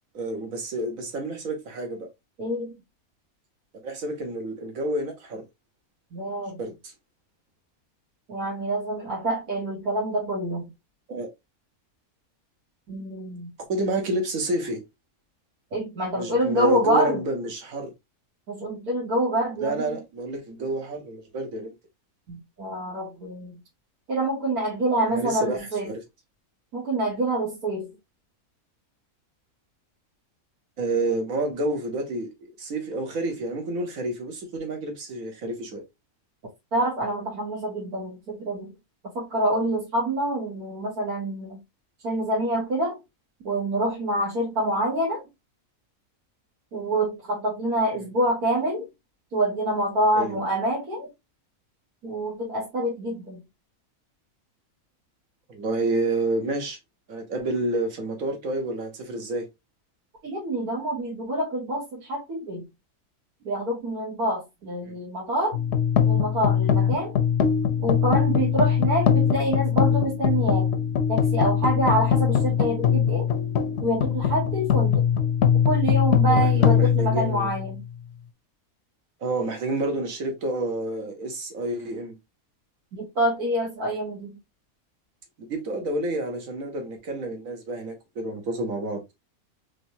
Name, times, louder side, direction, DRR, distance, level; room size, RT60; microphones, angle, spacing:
voice 1, 0.1-2.1 3.8-5.5 6.6-6.9 11.1-11.3 13.7-14.8 16.1-17.9 19.6-21.7 25.1-26.0 30.8-35.8 47.9-48.0 50.1-50.4 55.5-56.8 57.1-59.5 64.8-64.9 76.3-77.5 79.2-82.1 85.5-89.0, right 2 dB, 65° right, 1.5 m, -29 dB
voice 2, 2.4-2.8 6.1-6.6 8.3-10.7 12.9-13.5 15.7-17.2 18.5-20.0 22.3-23.6 24.1-25.9 26.7-27.9 36.7-38.7 39.1-41.6 42.0-42.9 43.4-45.2 46.7-48.9 49.3-51.1 52.0-53.4 60.2-62.6 63.5-65.6 66.0-67.1 67.8-70.7 71.1-73.3 73.8-75.0 75.5-77.8 82.9-84.4, right 1 dB, 90° right, 1.8 m, -26 dB
sound 1, 65.5-77.9, left 8 dB, 60° left, 0.7 m, -22 dB
3.8 x 3.3 x 2.7 m
omnidirectional pair, 1.5 m